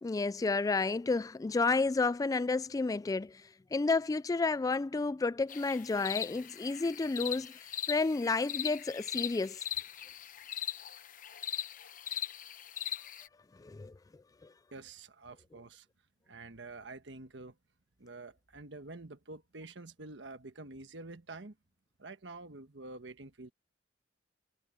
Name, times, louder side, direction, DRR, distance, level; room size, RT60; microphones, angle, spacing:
voice 1, 0.0-3.4 3.7-7.6 7.9-9.6 13.6-13.9, left 3 dB, 20° left, 0.3 m, -31 dB
sound 1, 5.5-13.3, left 10 dB, 45° left, 0.8 m, -40 dB
voice 2, 14.7-15.9 16.3-17.6 18.0-21.5 22.0-23.5, right 2 dB, 70° right, 1.4 m, -48 dB
head